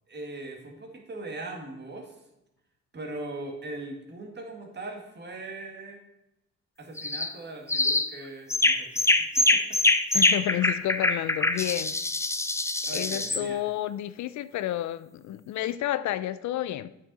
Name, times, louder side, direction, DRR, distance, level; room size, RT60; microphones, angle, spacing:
voice 1, 0.1-2.1 2.9-6.0 6.8-9.1 9.4-9.6 12.9-13.6, right 2 dB, 35° right, 1.8 m, -40 dB
sound 1, 7.0-7.3 7.7-8.1 8.5-13.4, left 2 dB, 10° left, 0.5 m, -24 dB
voice 2, 10.1-11.9 12.9-16.9, left 13 dB, 70° left, 0.5 m, -30 dB
8.4 x 6.1 x 4.1 m
cardioid pair, 90°, 30 cm